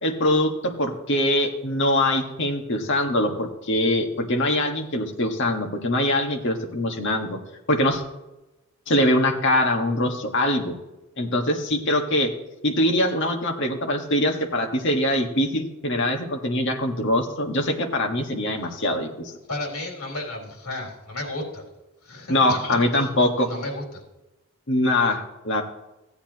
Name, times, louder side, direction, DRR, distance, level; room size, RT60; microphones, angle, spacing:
voice 1, 0.0-7.4 7.7-8.0 8.9-10.7 11.2-12.3 12.6-19.3 22.3-23.5 24.7-25.6, left 1 dB, 60° left, 3 dB, 1.5 m, -23 dB
voice 2, 19.5-21.6 22.0-23.1 23.5-24.0, left 2 dB, 85° left, -1 dB, 3.9 m, -33 dB
16.5 x 8.6 x 3.0 m, 0.99 s
head